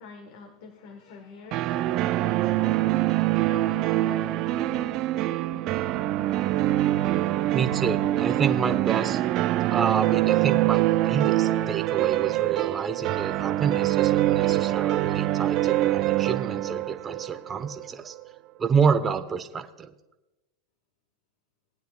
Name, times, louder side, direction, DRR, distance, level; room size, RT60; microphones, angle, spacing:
voice 1, 0.0-3.0 3.5-5.9, left 4 dB, 65° left, 6 dB, 1.3 m, -46 dB
sound 1, 1.5-18.2, right 15 dB, 50° right, 0.5 m, -24 dB
voice 2, 7.5-9.2 9.7-18.1 18.6-19.9, right 6 dB, 25° right, 8 dB, 1.0 m, -28 dB
19.5 x 9.2 x 2.4 m, 1.0 s
hypercardioid pair, 100°, 0 cm